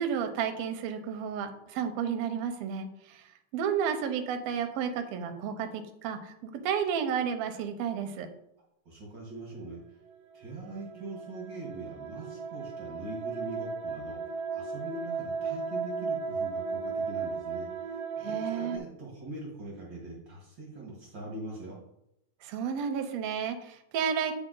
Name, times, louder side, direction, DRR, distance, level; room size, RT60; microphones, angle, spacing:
voice 1, 0.0-3.3 3.5-8.3 18.2-18.8 22.4-24.3, right 7 dB, 75° right, 6 dB, 1.7 m, -32 dB
voice 2, 8.8-9.8 10.3-21.8, right 2 dB, 50° right, -3 dB, 1.6 m, -42 dB
sound 1, 10.4-18.8, right 5 dB, 90° right, 1.3 m, -35 dB
7.9 x 4.2 x 3.8 m, 0.82 s
omnidirectional pair, 3.3 m